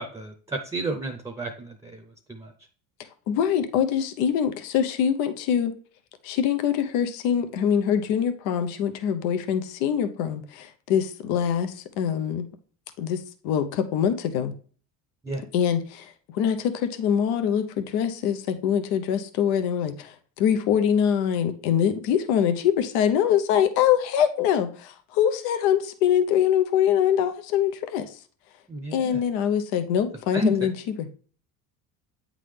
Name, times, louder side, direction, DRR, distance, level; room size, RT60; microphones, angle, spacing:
voice 1, 0.0-2.5 15.2-15.4 28.7-29.2 30.3-30.7, right 1 dB, 10° right, 5 dB, 0.6 m, -31 dB
voice 2, 3.3-5.7 6.2-12.5 13.0-14.5 15.5-28.1 28.9-30.7 31.0-31.1, left 9 dB, 85° left, 9 dB, 0.8 m, -24 dB
8.6 x 3.8 x 3.3 m, 0.43 s
cardioid pair, 120°, 36 cm